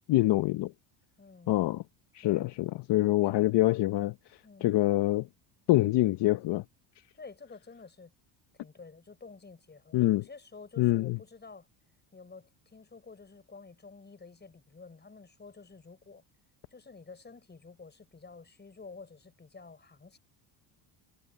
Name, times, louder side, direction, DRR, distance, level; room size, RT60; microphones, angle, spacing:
voice 1, 0.1-0.7 1.5-1.8 2.1-4.1 4.6-5.3 5.7-6.6 9.9-10.3 10.8-11.2, left 16 dB, 55° left, 0.9 m, -25 dB
voice 2, 1.2-1.5 2.2-2.5 3.2-3.4 4.4-4.8 7.2-8.1 8.6-11.7 12.1-16.2 16.7-20.2, left 4 dB, 20° left, 6.0 m, -50 dB
supercardioid pair, 100°, 49 cm